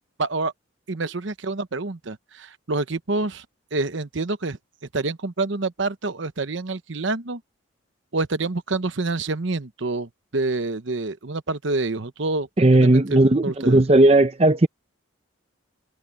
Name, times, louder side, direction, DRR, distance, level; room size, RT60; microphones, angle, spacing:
voice 1, 0.2-0.5 0.9-3.4 3.7-4.6 4.9-7.4 8.1-12.5 12.8-13.8, right 3 dB, 60° right, 1.0 m, -27 dB
voice 2, 12.6-14.7, right 2 dB, 30° right, 0.7 m, -16 dB
head